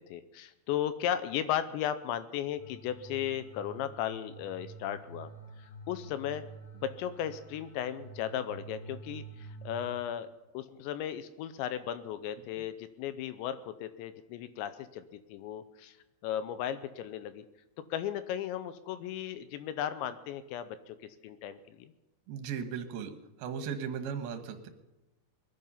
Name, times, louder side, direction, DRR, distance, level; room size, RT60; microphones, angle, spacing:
voice 1, 0.1-5.3 5.6-6.5 6.7-10.3 10.5-16.0 16.2-17.4 17.9-21.9, left 10 dB, 80° left, 12 dB, 2.9 m, -36 dB
sound 1, 2.6-10.0, right 3 dB, 40° left, 5.6 m, -48 dB
voice 2, 22.3-23.1 23.4-24.7, right 7 dB, 65° right, 7 dB, 2.8 m, -36 dB
20.5 x 10.5 x 5.6 m, 1.0 s
omnidirectional pair, 5.4 m